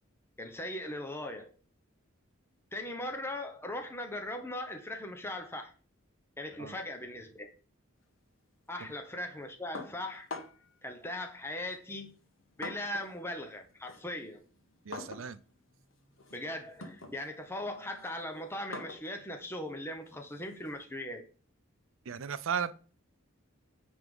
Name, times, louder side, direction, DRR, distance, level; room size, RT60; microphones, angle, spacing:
voice 1, 0.4-1.5 2.7-5.7 6.4-7.5 8.7-10.3 10.8-12.1 12.6-14.4 16.3-21.2, left 1 dB, 10° left, 0.9 m, -39 dB
sound 1, 9.8-10.8 11.7-13.2 13.5-20.8, left 2 dB, 70° left, 1.5 m, -47 dB
voice 2, 14.8-15.4 22.1-22.7, right 7 dB, 70° right, 0.5 m, -35 dB
9.2 x 3.6 x 5.4 m
head